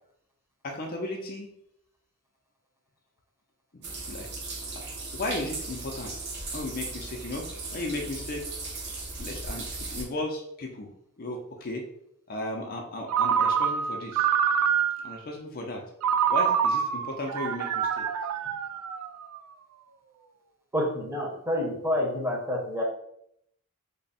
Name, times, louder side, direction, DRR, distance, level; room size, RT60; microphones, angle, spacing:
voice 1, 0.6-1.5 3.7-4.3 4.7-4.8 5.1-6.3 6.5-7.5 7.7-8.5 9.2-10.9 11.2-11.8 12.3-14.3 15.0-15.8 16.3-18.1 18.5-18.6, left 1 dB, 40° left, 1 dB, 0.5 m, -35 dB
sound 1, 3.8-10.0, right 3 dB, 50° right, 0.9 m, -37 dB
Ringtone, 13.1-15.2 16.0-19.4, right 7 dB, 75° right, 0.3 m, -26 dB
voice 2, 20.7-22.8, left 1 dB, 10° right, -2 dB, 0.8 m, -28 dB
3.4 x 2.2 x 4.0 m, 0.72 s
head